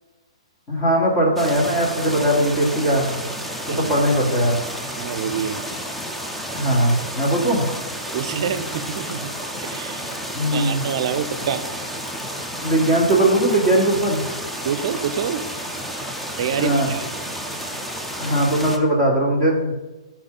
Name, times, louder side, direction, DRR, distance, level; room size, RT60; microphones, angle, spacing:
voice 1, 0.7-3.2 3.7-4.6 6.5-7.7 10.3-10.8 12.6-14.2 16.6-16.9 18.2-19.7, right 1 dB, 20° left, -4 dB, 1.6 m, -19 dB
sound 1, 1.4-18.8, equal, 5° left, 0.5 m, -31 dB
voice 2, 5.0-5.6 8.1-9.3 9.6-10.1 10.5-11.6 14.7-15.4 16.4-17.0, right 8 dB, 50° right, 11 dB, 0.5 m, -26 dB
11.0 x 4.3 x 3.8 m, 1.1 s
hypercardioid pair, 155°, 3 cm